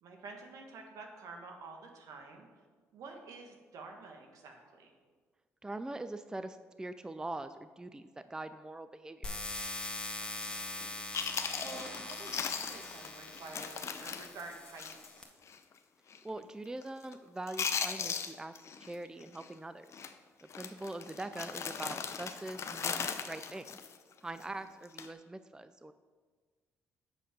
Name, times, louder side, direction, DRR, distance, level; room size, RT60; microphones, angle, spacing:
voice 1, 0.0-2.5 2.9-4.9 10.2-10.7 11.6-15.3 24.4-24.5, right 3 dB, 70° right, 3 dB, 1.5 m, -49 dB
voice 2, 5.6-9.4 16.2-20.0 20.5-23.8 24.2-25.9, right 2 dB, 10° right, 11 dB, 0.4 m, -43 dB
sound 1, 9.2-15.2, left 2 dB, 15° left, 1.7 m, -42 dB
Chewing mastication, 10.8-10.9 11.1-15.2 15.5-15.6 16.1-16.4 16.7-17.1 17.4-18.9 19.2-19.5 19.9-20.1 20.5-24.4 24.8-25.1, left 6 dB, 55° left, 0.7 m, -38 dB
7.5 x 6.9 x 5.2 m, 1.5 s
supercardioid pair, 60°, 6 cm